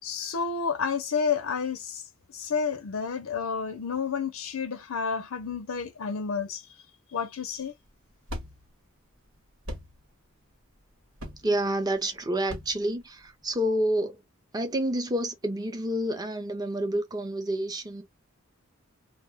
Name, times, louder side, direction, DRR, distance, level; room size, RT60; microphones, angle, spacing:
voice 1, 0.0-6.7 7.1-7.7, left 6 dB, 80° left, 0.5 m, -30 dB
sound 1, 7.5-13.7, left 1 dB, 75° right, 1.1 m, -42 dB
voice 2, 11.4-14.2 14.5-18.0, right 1 dB, 20° right, 0.6 m, -28 dB
2.3 x 2.1 x 3.4 m
head